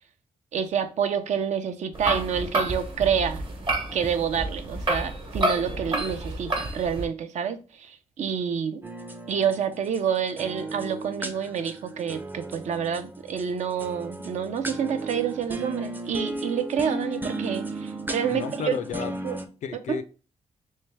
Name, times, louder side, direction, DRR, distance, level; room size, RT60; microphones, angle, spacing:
voice 1, 0.5-3.4 3.9-8.8 9.3-18.8 19.2-19.4 19.9-20.0, right 7 dB, 75° right, 0.5 m, -28 dB
sound 1, 1.9-7.0, right 1 dB, 45° right, 1.0 m, -29 dB
sound 2, 8.8-19.5, right 2 dB, 15° right, 0.5 m, -35 dB
voice 2, 18.2-19.1 19.6-20.0, left 7 dB, 90° left, 0.4 m, -32 dB
3.2 x 3.2 x 3.2 m
cardioid pair, 110°, 12 cm